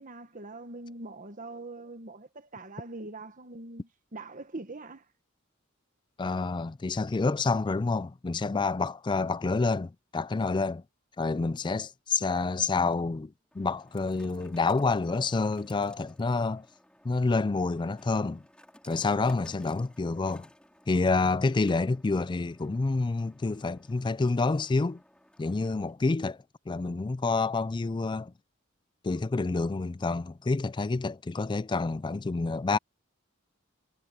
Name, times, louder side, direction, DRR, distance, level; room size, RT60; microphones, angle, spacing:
voice 1, 0.0-5.0, right 2 dB, 40° right, 1.4 m, -43 dB
voice 2, 6.2-10.8 11.2-16.7 17.0-18.4 18.9-20.5 20.9-25.0 25.4-26.4 26.7-28.3 29.0-32.8, left 3 dB, 20° left, 0.3 m, -28 dB
sound 1, 12.1-26.1, left 1 dB, 5° left, 5.1 m, -59 dB
head